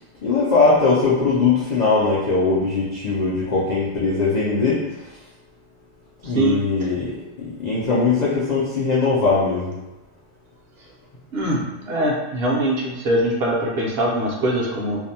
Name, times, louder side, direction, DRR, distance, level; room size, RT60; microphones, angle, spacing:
voice 1, 0.2-4.8 6.2-7.1 7.4-9.7, left 4 dB, 90° left, -7 dB, 0.3 m, -20 dB
voice 2, 11.3-15.0, right 1 dB, 60° right, -3 dB, 0.8 m, -22 dB
2.6 x 2.0 x 2.7 m, 1.0 s
omnidirectional pair, 1.3 m